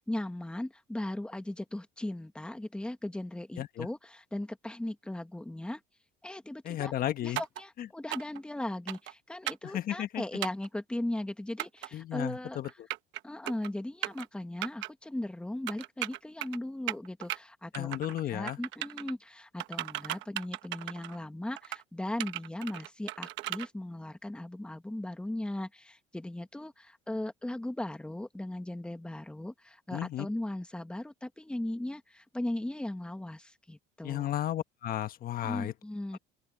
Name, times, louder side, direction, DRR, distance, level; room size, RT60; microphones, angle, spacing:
voice 1, 0.0-5.8 6.2-6.9 7.2-12.6 13.2-34.3 35.4-36.2, left 1 dB, 5° left, 1.5 m, -38 dB
voice 2, 3.6-3.9 6.6-7.4 7.8-7.9 9.6-10.2 11.9-12.9 17.7-18.6 29.9-30.3 34.0-35.7 36.1-36.2, left 12 dB, 50° left, 1.3 m, -34 dB
sound 1, 7.4-7.6 8.1-8.4 8.9-9.1 9.5-9.7 10.4-10.7 11.6-11.9 12.6-13.2 13.5-13.7 14.0-14.3 14.6-14.9 15.7-16.6 16.9-17.4 17.7-18.2 18.5-19.1 19.6-21.2 21.6-21.8 22.2-23.7, right 16 dB, 70° right, 1.1 m, -36 dB
open air
cardioid pair, 135°, 20 cm